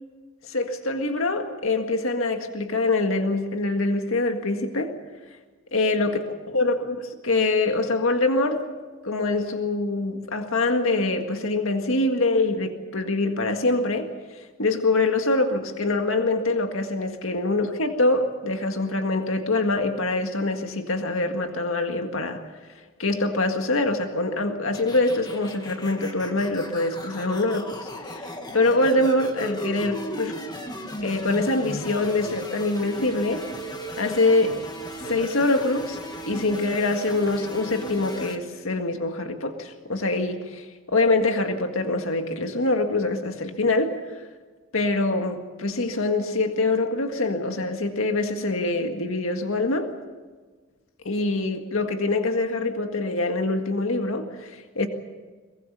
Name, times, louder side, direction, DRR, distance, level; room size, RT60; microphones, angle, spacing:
voice 1, 0.4-5.0 5.7-6.2 6.5-8.7 9.0-14.1 14.6-22.4 23.0-30.4 31.0-33.5 34.0-34.6 35.1-36.0 36.3-44.0 44.7-49.9 51.1-54.9, left 2 dB, 75° left, 5 dB, 1.8 m, -24 dB
sound 1, 24.7-38.4, equal, 20° left, 1.7 m, -36 dB
23.0 x 21.5 x 6.8 m, 1.4 s
head